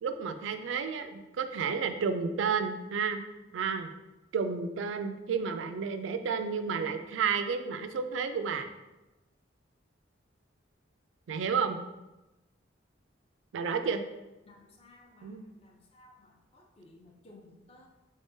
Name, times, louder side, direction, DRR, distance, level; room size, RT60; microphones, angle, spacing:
voice 1, 0.0-3.2 3.5-3.9 4.3-8.7 11.3-11.8 13.5-14.0 15.2-15.4, right 6 dB, 75° right, 8 dB, 0.3 m, -31 dB
voice 2, 14.4-17.9, left 2 dB, 30° left, 1 dB, 0.5 m, -57 dB
3.6 x 3.5 x 2.7 m, 1.0 s
head